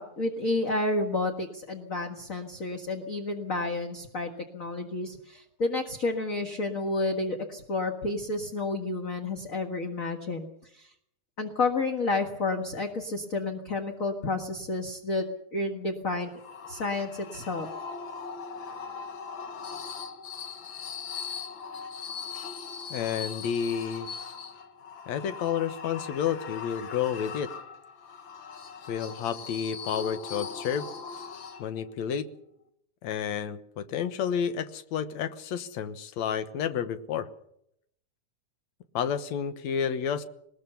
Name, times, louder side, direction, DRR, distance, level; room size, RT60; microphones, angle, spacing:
voice 1, 0.0-10.9 11.4-15.3 15.5-16.3 16.7-17.7, left 2 dB, 35° left, 3 dB, 1.6 m, -30 dB
sound 1, 16.2-31.9, left 5 dB, 50° left, 1.8 m, -40 dB
voice 2, 22.9-24.1 25.1-27.5 28.9-30.9 31.6-32.3 33.0-37.3 38.9-40.2, left 8 dB, 70° left, 11 dB, 2.3 m, -30 dB
20.5 x 20.5 x 6.9 m, 0.74 s
omnidirectional pair, 3.4 m